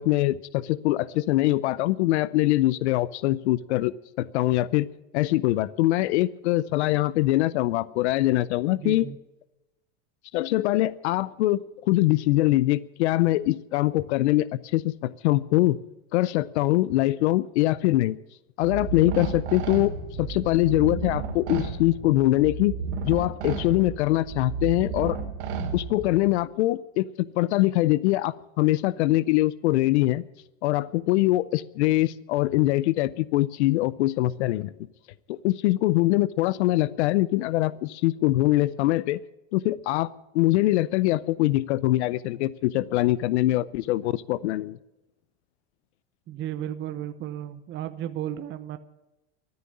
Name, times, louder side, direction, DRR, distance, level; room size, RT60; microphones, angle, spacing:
voice 1, 0.0-4.9 5.1-9.1 10.3-15.8 16.1-18.2 18.6-22.7 23.0-25.2 25.7-30.2 30.6-34.7 35.3-39.2 39.5-44.8, left 17 dB, 80° left, 20 dB, 0.6 m, -23 dB
voice 2, 8.7-9.2 46.3-48.8, right 11 dB, 35° right, 10 dB, 0.9 m, -34 dB
sound 1, 18.6-26.3, right 5 dB, 85° right, 2.9 m, -33 dB
13.5 x 9.6 x 9.7 m, 0.98 s
supercardioid pair, 125°, 34 cm